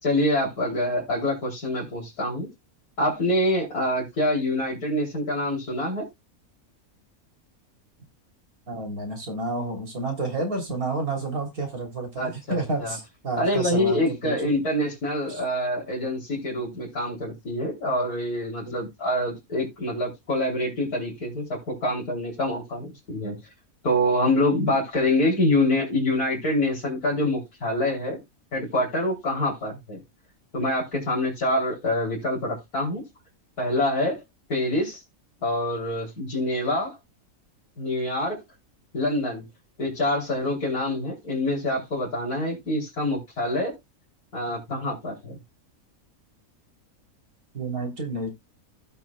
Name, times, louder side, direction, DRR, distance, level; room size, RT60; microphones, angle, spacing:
voice 1, 0.0-2.5 3.0-6.1 12.2-13.0 13.4-23.4 23.8-28.2 28.5-30.0 30.5-33.0 33.6-34.2 34.5-35.0 35.4-37.0 37.8-38.4 38.9-39.4 39.8-43.7 44.3-45.4, left 1 dB, 90° left, 3.6 m, -26 dB
voice 2, 8.7-14.5 15.3-15.4 18.6-18.8 47.5-48.3, right 2 dB, 75° right, 3.7 m, -30 dB
16.5 x 6.2 x 2.3 m
omnidirectional pair, 1.5 m